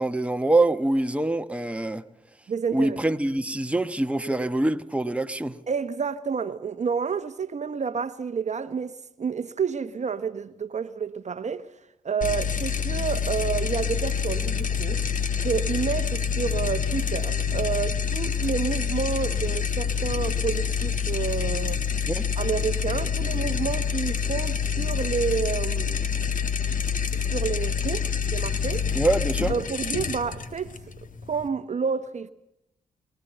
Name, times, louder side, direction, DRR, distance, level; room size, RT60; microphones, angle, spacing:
voice 1, 0.0-2.0 2.7-5.6 22.1-22.3 28.9-29.5, right 2 dB, 5° right, 1.1 m, -24 dB
voice 2, 2.5-3.0 5.7-11.7 12.0-15.0 15.4-21.8 22.4-26.0 27.3-28.9 29.5-30.8 31.3-32.3, right 6 dB, 45° right, 0.9 m, -29 dB
sound 1, 12.2-31.5, left 7 dB, 55° left, 1.5 m, -27 dB
23.5 x 18.5 x 8.0 m
hypercardioid pair, 45°, 16 cm